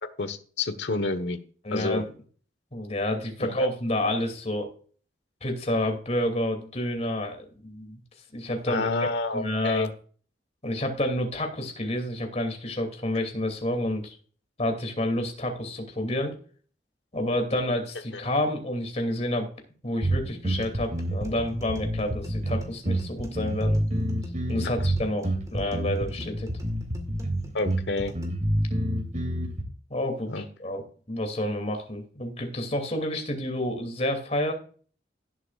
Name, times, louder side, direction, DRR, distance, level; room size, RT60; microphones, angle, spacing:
voice 1, 0.2-1.4 1.7-2.0 3.4-3.7 8.7-9.9 18.1-18.2 27.5-28.1 30.3-30.4, left 2 dB, 75° left, 10 dB, 1.3 m, -29 dB
voice 2, 1.6-2.0 2.7-4.7 5.4-8.0 8.3-8.9 9.3-9.9 10.6-14.2 14.6-16.3 17.1-19.5 19.8-23.8 24.5-26.5 29.9-30.8 31.1-34.5, left 1 dB, 35° left, 4 dB, 2.7 m, -29 dB
sound 1, 20.0-29.6, right 1 dB, 45° right, 2.6 m, -28 dB
sound 2, 20.3-28.3, equal, 20° right, 2.0 m, -46 dB
17.5 x 7.6 x 2.5 m, 0.43 s
head